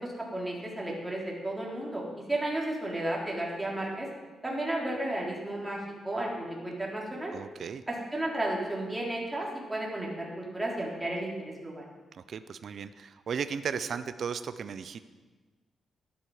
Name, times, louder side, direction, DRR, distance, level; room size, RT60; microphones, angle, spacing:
voice 1, 0.0-4.1 4.4-5.8 6.0-7.3 7.9-11.3 11.6-11.8, right 1 dB, 10° right, -3 dB, 3.5 m, -33 dB
voice 2, 7.3-7.8 12.1-15.0, right 6 dB, 55° right, 12 dB, 0.6 m, -35 dB
13.0 x 11.5 x 4.9 m, 1.3 s
cardioid pair, 110°, 0 cm